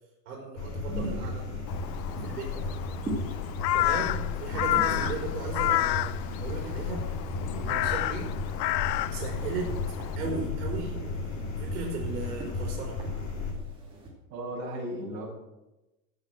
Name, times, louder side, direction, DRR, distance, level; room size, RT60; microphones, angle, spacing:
voice 1, 0.2-1.5 2.2-3.3 3.7-7.1 7.6-8.3 9.1-9.7 10.2-11.1 11.6-13.0, right 4 dB, 60° right, -1 dB, 4.5 m, -37 dB
sound 1, 0.6-13.5, left 3 dB, 30° left, 3.4 m, -34 dB
sound 2, 0.9-14.1, right 2 dB, 10° right, 2.5 m, -44 dB
Crow, 1.7-10.2, left 16 dB, 80° left, 0.6 m, -31 dB
voice 2, 14.3-15.3, equal, 30° right, -4 dB, 6.0 m, -35 dB
15.0 x 7.3 x 7.6 m, 0.99 s
supercardioid pair, 170°, 49 cm